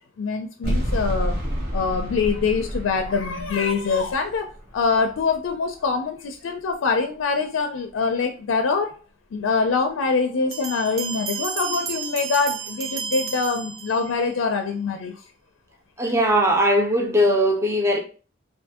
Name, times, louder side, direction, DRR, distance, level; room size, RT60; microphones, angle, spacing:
voice 1, 0.2-1.4 1.7-8.9 9.3-15.1, left 4 dB, 90° left, 0.4 m, -24 dB
sound 1, 0.6-5.8, equal, 55° right, 1.1 m, -30 dB
Bell, 10.5-14.3, right 6 dB, 80° right, 0.5 m, -32 dB
voice 2, 16.0-18.0, equal, 15° right, 0.5 m, -19 dB
2.6 x 2.6 x 3.5 m
head